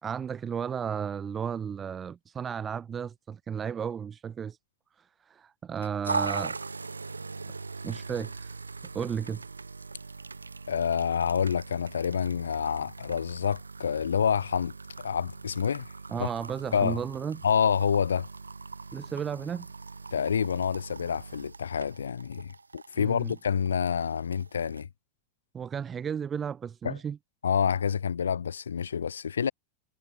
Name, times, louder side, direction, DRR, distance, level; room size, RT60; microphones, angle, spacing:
voice 1, 0.0-4.6 5.0-6.6 7.8-8.5 8.9-9.4 16.1-17.4 18.9-19.7 23.0-23.4 25.5-27.2, right 7 dB, 20° right, 2.0 m, -34 dB
sound 1, 6.0-24.8, right 4 dB, 80° right, 3.1 m, -40 dB
voice 2, 10.7-15.9 16.2-16.3 16.7-17.0 17.4-18.3 20.1-24.9 26.8-27.0 27.4-29.5, left 7 dB, 70° left, 1.9 m, -28 dB
figure-of-eight pair, 90°, 0 cm